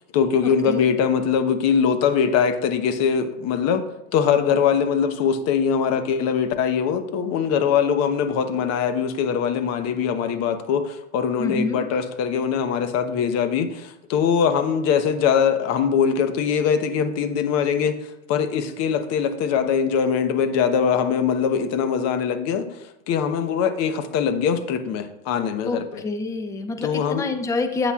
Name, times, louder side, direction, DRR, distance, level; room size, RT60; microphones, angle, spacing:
voice 1, 0.1-3.8 4.1-18.0 18.3-22.7 23.1-26.0 26.8-27.3, left 7 dB, 40° left, 9 dB, 1.0 m, -22 dB
voice 2, 11.4-11.8 25.6-27.9, left 3 dB, 10° left, 7 dB, 0.6 m, -27 dB
11.5 x 8.1 x 2.4 m, 0.85 s
hypercardioid pair, 120°, 41 cm